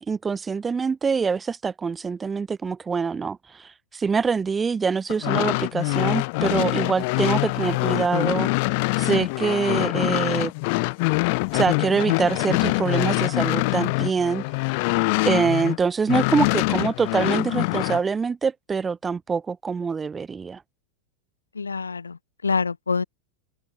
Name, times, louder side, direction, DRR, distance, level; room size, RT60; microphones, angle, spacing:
voice 1, 0.0-8.5 9.0-10.5 11.5-14.4 15.2-20.6, right 5 dB, 15° right, 2.5 m, -25 dB
sound 1, 5.1-15.8 16.1-18.0, left 29 dB, 45° left, 4.2 m, -24 dB
voice 2, 21.5-23.0, left 5 dB, 75° left, 7.9 m, -26 dB
figure-of-eight pair, 90°, 0 cm